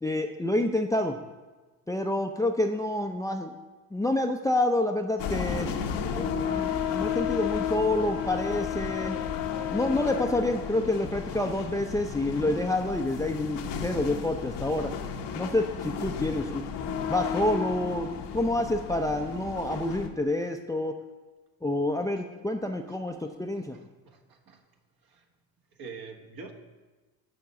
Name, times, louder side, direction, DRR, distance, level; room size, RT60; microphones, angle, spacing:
voice 1, 0.0-1.2 1.9-3.5 3.9-5.7 6.1-9.2 9.7-14.9 15.3-16.6 17.1-21.0 21.6-23.8, left 1 dB, 10° left, 5 dB, 0.5 m, -28 dB
sound 1, 5.2-20.1, left 7 dB, 70° left, 1.0 m, -33 dB
voice 2, 22.6-24.6 25.0-25.2 25.7-26.5, right 5 dB, 55° right, 4 dB, 1.4 m, -47 dB
6.7 x 5.2 x 6.9 m, 1.2 s
hypercardioid pair, 60°, 44 cm